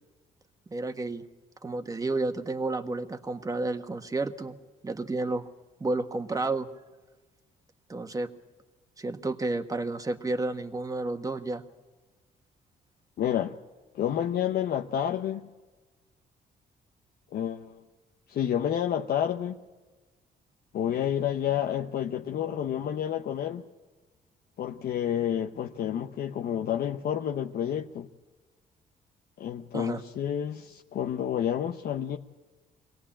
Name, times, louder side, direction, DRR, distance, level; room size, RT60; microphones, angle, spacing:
voice 1, 0.7-1.2 1.6-4.6 4.8-5.5 5.8-6.7 7.9-8.3 9.0-11.6 29.7-30.0, right 2 dB, 20° right, 1.5 m, -31 dB
voice 2, 13.2-13.6 13.9-15.5 17.3-17.8 18.3-19.6 20.7-23.6 24.6-28.1 29.4-32.2, left 10 dB, 65° left, 0.9 m, -29 dB
23.0 x 17.5 x 8.8 m
cardioid pair, 100°, 17 cm